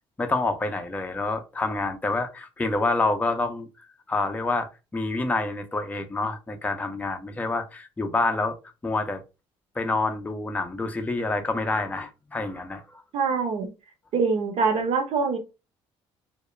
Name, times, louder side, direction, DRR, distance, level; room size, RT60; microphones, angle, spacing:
voice 1, 0.2-3.7 4.1-8.6 8.8-9.2 9.8-13.0, left 3 dB, 15° left, 0.5 m, -27 dB
voice 2, 13.1-13.7 14.1-15.4, right 5 dB, 65° right, 0.8 m, -24 dB
2.1 x 2.1 x 3.1 m
supercardioid pair, 85°, 11 cm